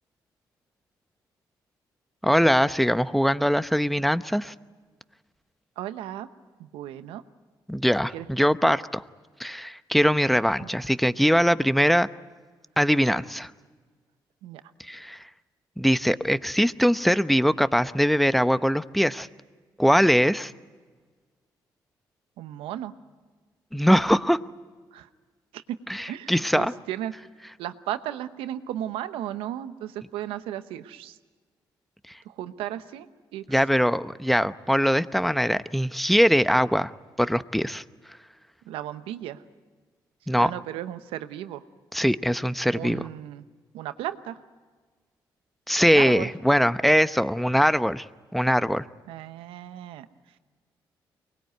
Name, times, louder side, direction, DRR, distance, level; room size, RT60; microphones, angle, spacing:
voice 1, 2.2-4.5 7.7-9.0 9.4-12.1 12.8-13.5 14.9-15.2 15.8-19.3 19.8-20.5 23.7-24.4 25.9-26.7 33.5-36.9 37.2-37.8 40.3-40.5 41.9-43.0 45.7-48.0 48.3-48.8, equal, ahead, 14 dB, 0.8 m, -22 dB
voice 2, 5.8-6.3 6.6-7.2 8.1-8.3 8.6-8.7 10.6-10.8 14.4-14.6 22.4-22.9 24.9-25.1 25.5-25.6 26.1-27.1 27.6-31.2 32.2-33.1 33.3-33.6 38.7-39.4 40.4-41.6 42.7-43.4 43.7-44.4 45.9-46.3 49.1-50.1, right 12 dB, 90° right, 11 dB, 0.9 m, -35 dB
24.0 x 20.0 x 9.3 m, 1.4 s
supercardioid pair, 60°, 9 cm